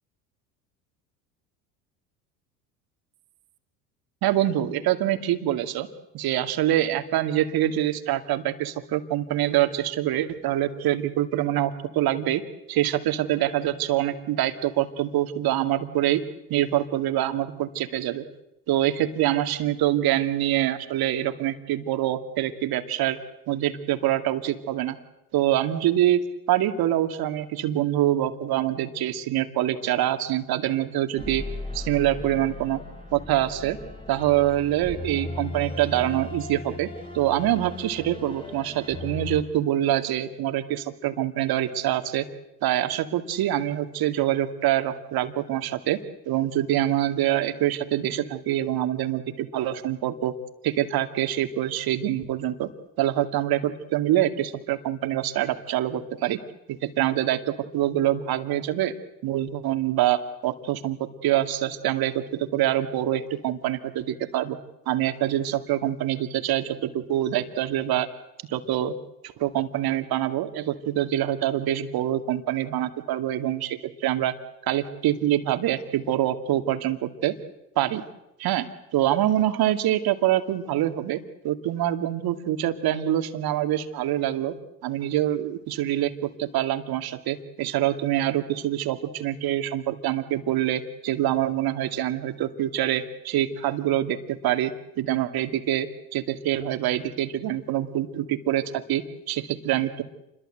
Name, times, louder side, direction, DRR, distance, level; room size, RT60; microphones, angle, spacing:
voice 1, 4.2-5.9 6.1-12.4 12.7-16.2 16.5-18.2 18.7-23.2 23.5-25.0 25.3-26.2 26.5-31.4 31.7-32.8 33.1-33.8 34.1-42.3 42.6-46.0 46.3-50.3 50.6-52.7 53.0-56.4 56.7-58.9 59.2-64.6 64.9-68.1 68.5-68.9 69.2-74.3 74.6-77.4 77.8-78.0 78.4-78.7 78.9-84.6 84.8-100.0, right 12 dB, 50° right, 8 dB, 2.4 m, -25 dB
sound 1, 31.2-39.4, left 2 dB, 10° left, 6.9 m, -37 dB
29.0 x 22.0 x 7.9 m, 0.90 s
hypercardioid pair, 70°, 47 cm